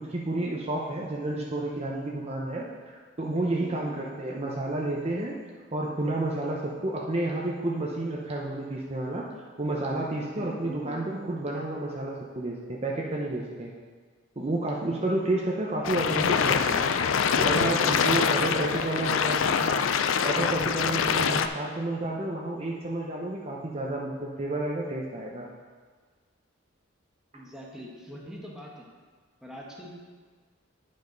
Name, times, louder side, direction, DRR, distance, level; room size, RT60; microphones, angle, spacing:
voice 1, 0.0-5.4 5.7-9.3 9.6-13.7 14.4-16.9 17.4-19.8 20.2-25.5, right 2 dB, 30° right, -2 dB, 0.7 m, -30 dB
voice 2, 3.6-4.0 10.3-11.0 15.8-16.0 18.4-19.3 27.3-28.8 29.4-29.9, equal, 5° right, -3 dB, 1.1 m, -43 dB
sound 1, 15.8-21.5, left 6 dB, 80° left, 0.4 m, -25 dB
10.5 x 5.3 x 3.9 m, 1.5 s
head